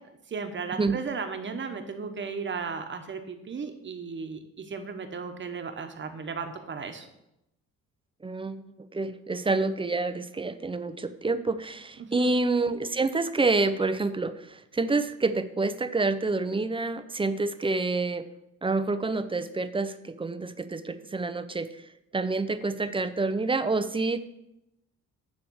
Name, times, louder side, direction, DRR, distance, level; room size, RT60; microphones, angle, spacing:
voice 1, 0.3-7.1 12.1-12.3, right 5 dB, 40° right, 6 dB, 1.1 m, -35 dB
voice 2, 8.2-18.2 18.6-24.2, right 3 dB, 20° right, 11 dB, 0.5 m, -28 dB
9.8 x 3.4 x 6.3 m, 0.85 s
cardioid pair, 90°, 30 cm